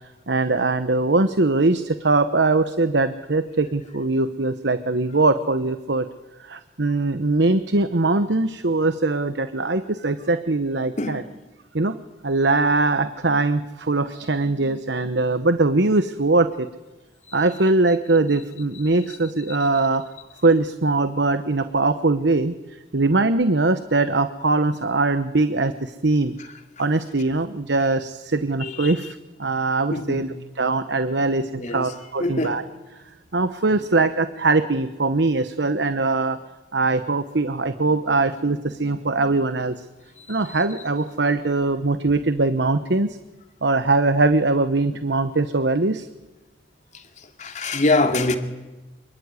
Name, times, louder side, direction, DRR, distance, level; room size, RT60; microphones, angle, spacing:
voice 1, 0.3-6.0 6.5-11.2 11.7-11.9 12.2-16.7 17.3-20.0 20.4-22.5 22.9-26.3 26.8-30.3 30.6-32.6 33.3-36.4 36.7-39.7 40.3-43.2 43.6-46.1, right 3 dB, 65° right, 1.1 m, -21 dB
voice 2, 11.0-11.3 28.6-28.9 29.9-30.3 31.6-31.9 32.2-32.6 40.3-40.4 47.4-48.4, left 2 dB, 40° left, 2.8 m, -24 dB
27.0 x 23.0 x 9.7 m
head